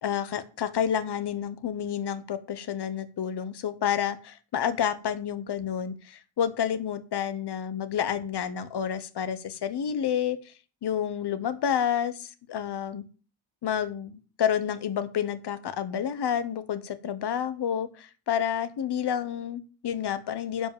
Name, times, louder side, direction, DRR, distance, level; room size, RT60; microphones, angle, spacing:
voice 1, 0.0-10.4 10.8-13.0 13.6-20.7, left 9 dB, 55° left, 13 dB, 1.2 m, -29 dB
11.0 x 5.0 x 6.9 m, 0.36 s
wide cardioid pair, 160°, 49 cm